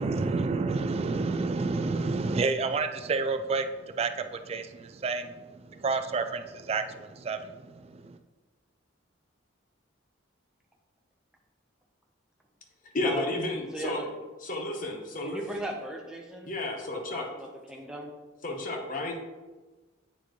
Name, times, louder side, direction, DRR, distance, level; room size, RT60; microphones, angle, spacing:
voice 1, 0.0-8.2, right 4 dB, 30° right, 8 dB, 0.3 m, -30 dB
voice 2, 12.9-14.0 14.4-15.4 16.5-17.3 18.4-19.2, left 2 dB, 45° left, 1 dB, 1.0 m, -32 dB
voice 3, 13.7-14.1 15.2-16.5 16.9-18.1, equal, 5° right, -1 dB, 0.8 m, -37 dB
8.4 x 4.6 x 3.1 m, 1.2 s
head